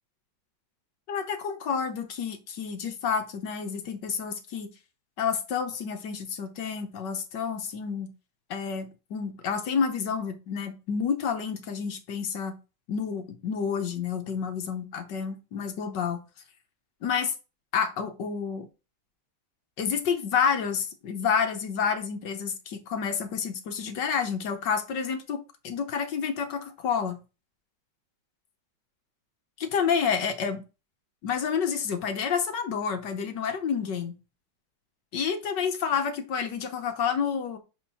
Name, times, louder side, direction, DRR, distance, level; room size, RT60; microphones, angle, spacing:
voice 1, 1.1-4.7 5.2-8.1 8.5-12.5 12.9-16.2 17.0-17.3 17.7-18.7 19.8-27.2 29.6-30.6 31.2-34.2 35.1-37.6, left 6 dB, 65° left, 1.6 m, -29 dB
5.4 x 4.9 x 5.6 m
omnidirectional pair, 2.1 m